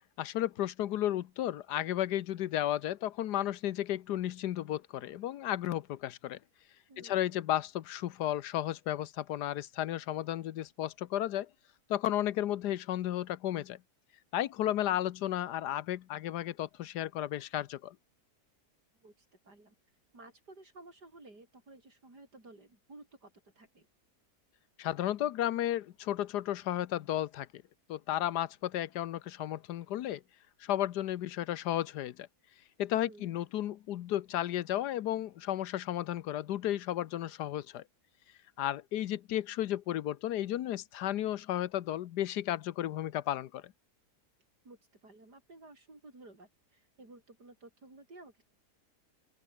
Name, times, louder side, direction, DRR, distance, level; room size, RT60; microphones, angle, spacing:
voice 1, 0.2-6.4 7.0-11.5 11.9-13.8 14.3-17.9 24.8-27.6 27.9-30.2 30.6-32.3 32.8-37.8 38.6-43.7, left 12 dB, 85° left, 1.4 m, -33 dB
voice 2, 6.9-7.3 19.0-19.8 20.1-23.9 33.0-33.3 44.7-48.4, right 2 dB, 85° right, 7.0 m, -54 dB
open air
omnidirectional pair, 1.7 m